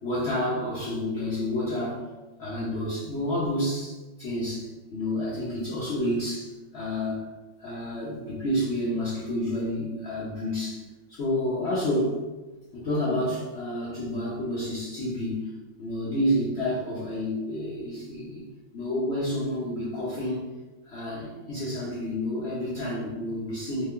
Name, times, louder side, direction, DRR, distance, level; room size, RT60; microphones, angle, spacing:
voice 1, 0.0-2.0 2.4-7.3 7.6-10.8 11.1-12.2 12.7-15.5 15.8-18.5 18.7-20.4 20.8-23.9, left 1 dB, 70° left, -8 dB, 0.6 m, -29 dB
3.2 x 2.2 x 3.6 m, 1.2 s
omnidirectional pair, 2.2 m